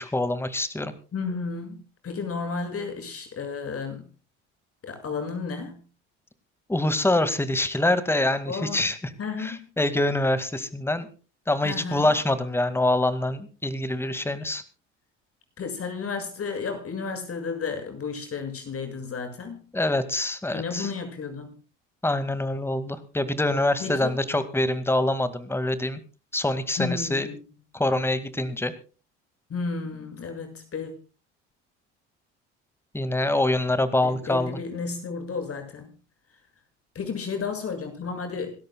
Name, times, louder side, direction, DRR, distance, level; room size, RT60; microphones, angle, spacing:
voice 1, 0.0-0.9 6.7-9.1 9.4-11.1 11.5-14.6 19.7-20.9 22.0-26.0 26.3-27.3 27.7-28.7 32.9-34.6, left 1 dB, 5° left, 12 dB, 2.1 m, -25 dB
voice 2, 1.1-1.8 2.0-4.0 4.8-5.8 8.5-8.9 9.2-9.6 11.6-12.1 15.6-19.6 20.5-21.6 23.8-24.1 26.8-27.4 29.5-30.9 34.0-35.9 37.0-38.6, left 5 dB, 40° left, 7 dB, 7.1 m, -32 dB
27.5 x 13.0 x 2.3 m, 0.36 s
hypercardioid pair, 65°, 36 cm